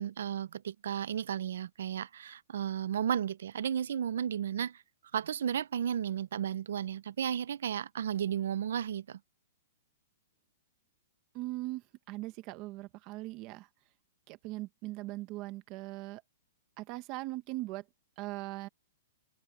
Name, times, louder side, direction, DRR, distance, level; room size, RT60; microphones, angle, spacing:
voice 1, 0.0-4.8 5.1-9.2, right 9 dB, 60° right, 0.7 m, -33 dB
voice 2, 11.3-13.7 14.3-16.2 16.8-17.8 18.2-18.7, right 19 dB, 25° right, 1.0 m, -40 dB
hypercardioid pair, 180°, 0 cm